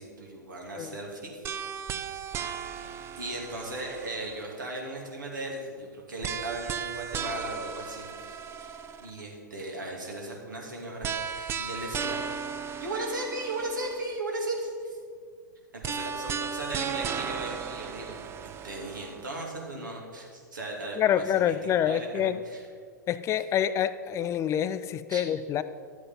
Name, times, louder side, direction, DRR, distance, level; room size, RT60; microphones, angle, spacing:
voice 1, 0.0-1.4 2.3-2.7 3.2-12.2 12.8-15.0 15.7-18.2 18.4-22.6 25.1-25.2, right 2 dB, 80° right, -1 dB, 2.9 m, -37 dB
sound 1, 1.4-4.6 6.2-9.2 11.0-14.2 15.8-19.3, right 7 dB, 25° right, 0.6 m, -36 dB
voice 2, 21.0-22.4 23.1-25.6, left 10 dB, 30° left, 13 dB, 0.5 m, -27 dB
12.0 x 8.1 x 5.7 m, 2.1 s
figure-of-eight pair, 100°, 10 cm